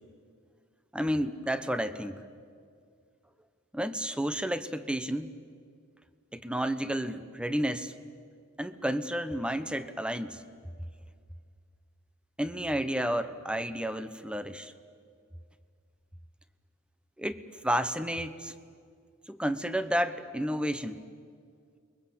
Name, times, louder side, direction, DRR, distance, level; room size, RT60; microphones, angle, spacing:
voice 1, 0.9-2.2 3.7-5.3 6.3-7.9 8.6-10.4 12.4-14.7 17.2-18.5 19.3-21.0, equal, 5° right, 11 dB, 1.0 m, -31 dB
29.5 x 23.0 x 8.7 m, 2.2 s
head